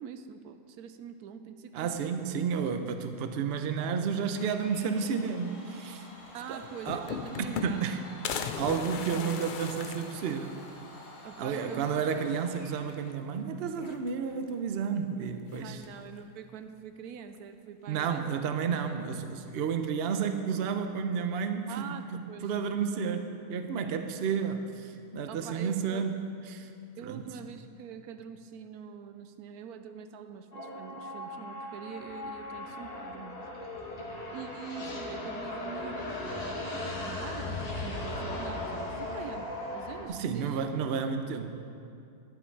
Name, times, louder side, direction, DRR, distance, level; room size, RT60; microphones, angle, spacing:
voice 1, 0.0-1.9 6.3-8.1 8.6-8.7 11.2-11.9 15.6-18.1 21.7-22.5 25.3-26.1 27.0-33.4 34.3-40.9, right 7 dB, 90° right, 9 dB, 1.1 m, -44 dB
voice 2, 1.7-6.1 6.5-7.1 7.4-8.0 8.6-10.5 11.4-15.8 17.9-26.2 26.5-26.7 27.0-27.2 40.1-41.5, right 6 dB, 55° right, 7 dB, 0.8 m, -31 dB
Domestic sounds home sounds, 4.3-13.0, left 1 dB, 55° left, 2.0 m, -50 dB
sound 1, 6.3-6.4 6.6-7.9 8.2-10.8 11.3-11.4 11.6-11.7 12.9-13.3 13.7-14.4 15.5-16.1, left 6 dB, 80° left, 0.4 m, -38 dB
sound 2, 30.5-40.1, left 2 dB, 25° left, 1.3 m, -37 dB
11.5 x 10.5 x 4.6 m, 2.4 s
omnidirectional pair, 1.6 m